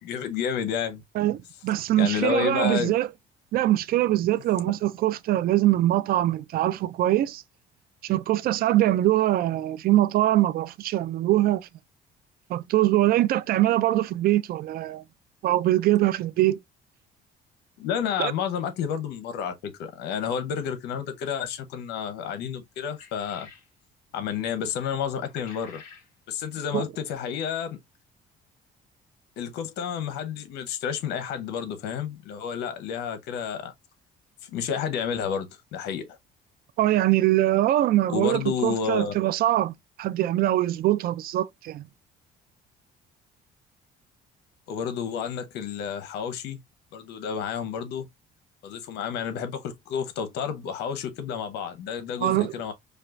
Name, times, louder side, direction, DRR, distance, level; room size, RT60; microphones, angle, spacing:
voice 1, 0.0-1.0 1.9-2.9 17.8-23.5 24.1-25.8 26.3-27.8 29.4-33.7 34.4-36.2 38.1-39.1 44.7-46.6 46.9-48.1 48.6-52.7, left 7 dB, 85° left, 0.9 m, -30 dB
voice 2, 1.2-3.1 3.5-7.4 8.0-11.7 12.5-15.0 15.4-16.6 18.2-18.3 26.7-26.8 36.8-39.7 40.0-41.8 52.2-52.5, right 14 dB, 60° right, 0.4 m, -23 dB
sound 1, 22.9-23.7 25.2-26.1, left 6 dB, 55° left, 2.6 m, -48 dB
5.1 x 2.3 x 2.4 m
cardioid pair, 110°, 17 cm